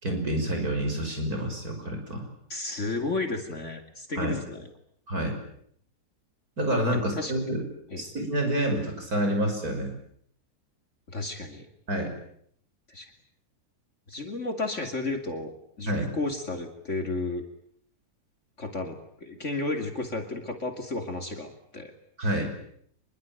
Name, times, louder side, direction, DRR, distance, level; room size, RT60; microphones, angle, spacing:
voice 1, 0.0-2.3 4.2-4.3 5.1-5.4 6.6-7.6 8.0-9.9 11.9-12.1 15.9-16.1 22.2-22.5, right 1 dB, 65° right, 4 dB, 6.5 m, -28 dB
voice 2, 2.5-4.7 6.9-7.3 7.9-8.0 11.1-11.7 12.9-13.1 14.1-17.5 18.6-21.9 22.2-22.4, left 3 dB, 45° left, 5 dB, 3.1 m, -33 dB
25.0 x 23.0 x 9.2 m, 0.67 s
omnidirectional pair, 1.7 m